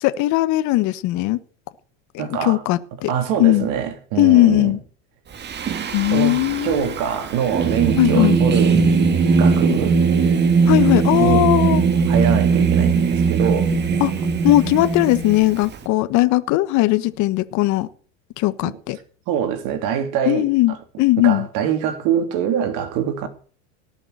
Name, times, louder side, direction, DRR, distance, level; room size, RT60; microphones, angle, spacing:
voice 1, 0.0-1.4 2.1-3.1 3.4-3.7 4.2-4.8 5.9-6.9 8.0-8.4 10.7-11.8 14.0-14.1 14.4-17.9 18.4-19.0 20.3-21.5, left 17 dB, 50° left, 1.3 m, -18 dB
voice 2, 2.2-2.6 3.1-4.7 6.1-8.9 9.4-10.0 11.2-11.5 12.1-13.7 18.6-18.8 19.3-20.8 21.2-23.3, right 8 dB, 60° right, 3.2 m, -24 dB
Singing, 5.4-15.8, right 5 dB, 30° right, 1.9 m, -19 dB
18.0 x 7.2 x 6.7 m
supercardioid pair, 110°, 36 cm